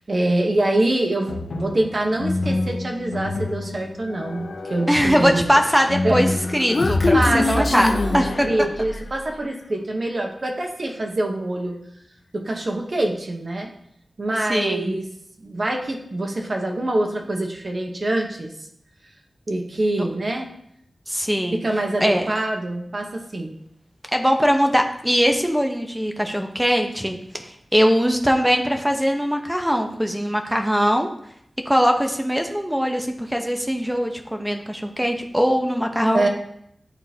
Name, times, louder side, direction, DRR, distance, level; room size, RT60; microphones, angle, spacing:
voice 1, 0.1-5.4 6.0-6.3 6.9-11.8 12.3-13.7 14.2-15.1 15.4-18.5 19.5-20.5 21.5-23.5 36.1-36.3, right 1 dB, 50° right, 2 dB, 1.0 m, -25 dB
sound 1, 1.3-8.7, left 2 dB, 90° left, 0.8 m, -29 dB
voice 2, 4.9-7.9 8.1-8.5 14.5-15.0 21.1-21.6 22.0-22.3 24.1-27.2 27.7-31.1 31.7-36.2, equal, 5° right, 4 dB, 0.8 m, -21 dB
Human voice, 6.2-9.2, left 2 dB, 45° left, 0.5 m, -23 dB
11.0 x 3.8 x 2.8 m, 0.70 s
wide cardioid pair, 105°, 0 cm